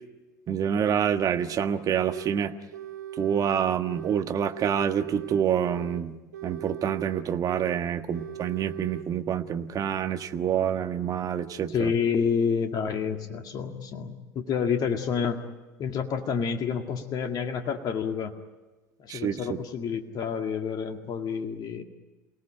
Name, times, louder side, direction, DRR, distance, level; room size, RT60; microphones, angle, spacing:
voice 1, 0.5-2.5 3.2-6.2 6.4-11.9 19.1-19.6, right 8 dB, 40° right, 8 dB, 1.4 m, -27 dB
sound 1, 2.1-2.4 2.7-4.2 4.5-6.0 6.3-7.8 8.1-9.1, right 11 dB, 75° right, 1.1 m, -40 dB
voice 2, 11.7-15.4 15.8-18.4 19.0-21.8, left 6 dB, 45° left, 5 dB, 2.0 m, -29 dB
28.5 x 18.5 x 9.0 m, 1.2 s
hypercardioid pair, 75°, 9 cm